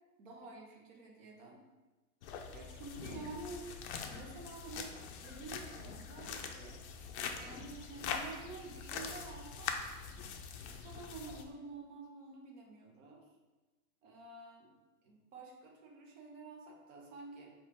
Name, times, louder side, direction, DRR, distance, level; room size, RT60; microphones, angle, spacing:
voice 1, 0.2-1.6 2.5-3.6 4.1-4.9 5.2-6.8 7.4-9.7 10.7-13.2 14.0-14.7 15.0-17.5, right 3 dB, 50° right, 0 dB, 1.1 m, -49 dB
sound 1, 2.2-11.4, left 6 dB, 45° left, 0.5 m, -43 dB
4.4 x 2.5 x 4.8 m, 1.2 s
hypercardioid pair, 140°, 48 cm